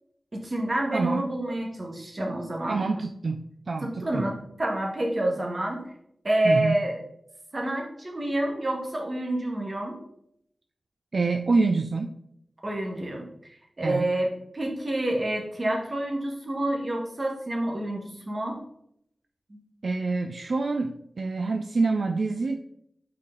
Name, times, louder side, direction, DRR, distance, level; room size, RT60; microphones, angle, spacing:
voice 1, 0.3-2.8 3.8-5.8 6.2-7.0 7.5-10.0 12.6-13.3 13.8-14.3 14.5-18.6 19.5-19.6, right 1 dB, 40° right, 0 dB, 1.6 m, -28 dB
voice 2, 0.9-1.2 2.7-4.2 6.4-6.8 11.1-12.1 13.8-14.1 19.8-22.6, right 3 dB, 65° right, 5 dB, 0.4 m, -26 dB
5.6 x 4.9 x 3.9 m, 0.74 s
wide cardioid pair, 60°, 0 cm